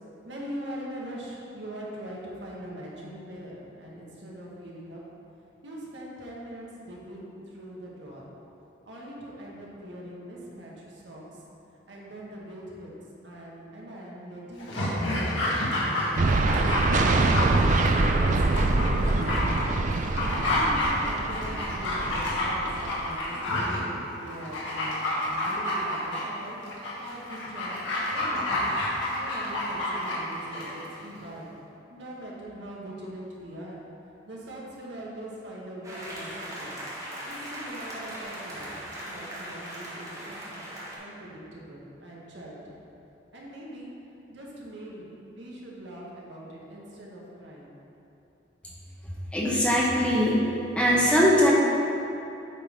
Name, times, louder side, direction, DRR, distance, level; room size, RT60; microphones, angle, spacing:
voice 1, 0.2-5.0 5.6-7.3 7.5-8.2 8.9-11.2 11.9-12.9 13.2-16.6 18.2-19.8 20.3-26.6 27.0-28.7 29.1-31.5 31.9-33.8 34.3-36.7 37.2-38.7 39.1-40.6 41.0-42.7 43.3-43.9 44.3-47.7, right 1 dB, 75° right, -4 dB, 1.5 m, -42 dB
Dog, 14.6-30.9 31.2-31.3, left 1 dB, 90° left, 1.6 m, -29 dB
sound 1, 16.2-23.2, right 2 dB, 40° right, 0.4 m, -25 dB
sound 2, 35.8-41.0, right 1 dB, 20° right, 1.2 m, -39 dB
voice 2, 49.3-50.4 50.8-51.5, equal, 5° left, -4 dB, 0.8 m, -21 dB
8.3 x 3.8 x 5.1 m, 2.9 s
head